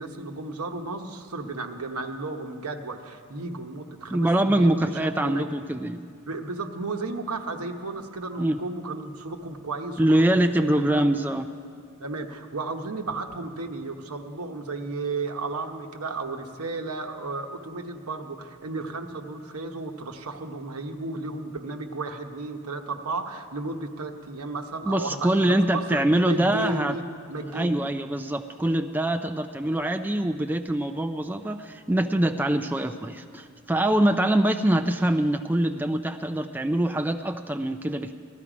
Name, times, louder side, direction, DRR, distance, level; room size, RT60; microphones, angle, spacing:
voice 1, 0.0-5.5 6.2-10.3 10.6-11.1 12.0-27.0 27.3-27.9, right 3 dB, 80° right, 5 dB, 1.0 m, -34 dB
voice 2, 4.1-6.1 8.4-8.6 10.0-11.5 24.8-27.0 27.5-38.1, right 1 dB, 10° right, 6 dB, 0.4 m, -24 dB
17.0 x 13.0 x 5.0 m, 2.2 s
head